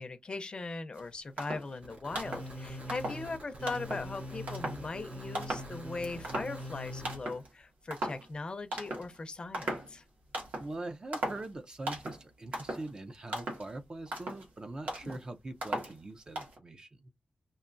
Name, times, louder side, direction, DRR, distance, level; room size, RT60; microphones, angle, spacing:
voice 1, 0.0-10.0 15.0-15.2, left 3 dB, 35° left, 0.6 m, -39 dB
sound 1, 0.9-1.0 1.4-1.8 2.1-2.5 2.9-3.3 3.7-4.1 4.5-4.9 5.3-5.8 6.0-6.8 7.0-7.5 7.9-8.3 8.7-9.2 9.5-9.9 10.3-10.7 11.1-11.5 11.9-12.2 12.5-12.9 13.3-13.7 14.1-14.5 14.9-15.2 15.6-16.0 16.4-16.6, right 1 dB, 70° right, 1.7 m, -37 dB
sound 2, 1.8-7.2, equal, 50° right, 2.9 m, -43 dB
voice 2, 10.6-17.1, right 2 dB, 30° right, 0.5 m, -42 dB
5.4 x 2.7 x 2.6 m
wide cardioid pair, 160°, 3 cm